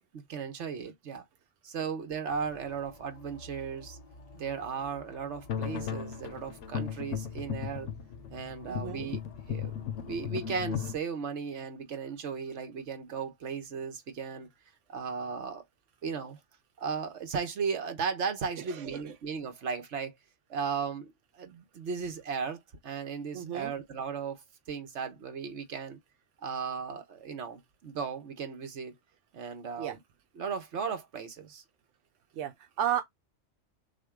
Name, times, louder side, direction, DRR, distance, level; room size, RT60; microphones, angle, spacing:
voice 1, 0.3-1.2 1.6-4.0 4.3-7.9 8.3-9.2 9.5-14.5 14.9-15.6 16.0-16.4 16.8-20.1 20.5-26.0 26.4-28.9 29.3-30.0 30.3-31.6, right 6 dB, 70° right, 1.3 m, -36 dB
sound 1, 2.3-10.3, left 3 dB, 45° left, 0.5 m, -51 dB
sound 2, 5.5-11.0, left 8 dB, 75° left, 1.0 m, -36 dB
voice 2, 8.7-9.1 18.7-19.1 23.3-23.7 29.8-30.0 32.4-33.0, right 10 dB, 90° right, 1.0 m, -33 dB
6.3 x 2.2 x 3.6 m
omnidirectional pair, 1.2 m